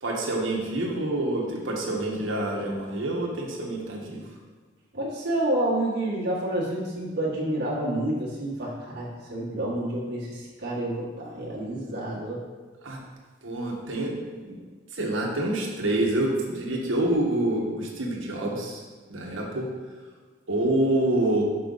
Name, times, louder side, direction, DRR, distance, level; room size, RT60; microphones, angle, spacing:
voice 1, 0.0-4.2 12.8-13.0 13.4-14.6 14.9-18.8 19.1-19.7 20.5-21.4, right 1 dB, 85° right, -1 dB, 1.3 m, -27 dB
voice 2, 4.9-12.4, right 1 dB, 55° right, -5 dB, 1.6 m, -29 dB
6.0 x 5.6 x 4.0 m, 1.4 s
head